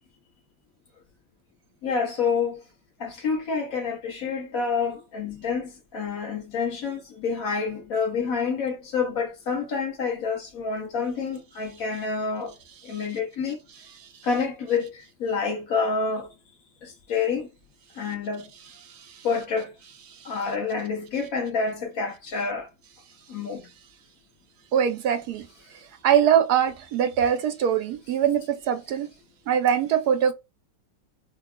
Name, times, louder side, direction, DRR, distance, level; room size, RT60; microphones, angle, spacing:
voice 1, 1.8-2.6 3.0-12.6 12.8-13.6 14.2-16.3 16.8-17.5 18.0-18.5 19.2-19.7 20.2-22.7 23.3-23.6, left 5 dB, 60° left, 1.1 m, -28 dB
voice 2, 24.7-25.5 26.0-29.1 29.5-30.3, right 9 dB, 70° right, 1.0 m, -22 dB
4.7 x 2.3 x 2.2 m
omnidirectional pair, 1.9 m